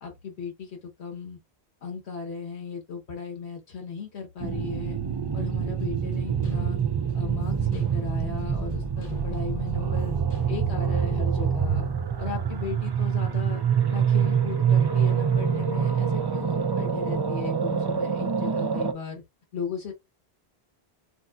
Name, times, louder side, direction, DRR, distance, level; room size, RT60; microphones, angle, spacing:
voice 1, 0.0-1.4 1.8-5.0 5.3-6.8 7.1-10.2 10.5-11.9 12.2-13.6 13.9-19.2 19.5-19.9, left 6 dB, 85° left, 1.5 m, -36 dB
sound 1, 4.4-18.9, right 7 dB, 40° right, 0.3 m, -26 dB
sound 2, 5.8-10.9, equal, 45° left, 2.5 m, -52 dB
7.8 x 2.6 x 2.3 m
omnidirectional pair, 1.1 m